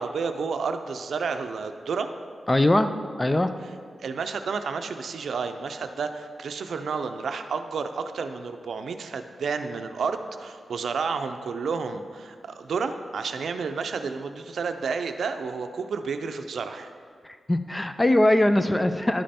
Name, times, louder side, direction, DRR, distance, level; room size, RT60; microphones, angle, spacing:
voice 1, 0.0-2.1 4.0-16.9, right 5 dB, 80° right, 7 dB, 0.5 m, -31 dB
voice 2, 2.5-2.9 3.2-3.5 17.2-19.2, left 1 dB, 15° left, 9 dB, 0.3 m, -21 dB
11.0 x 5.2 x 4.3 m, 2.1 s
wide cardioid pair, 150°, 0 cm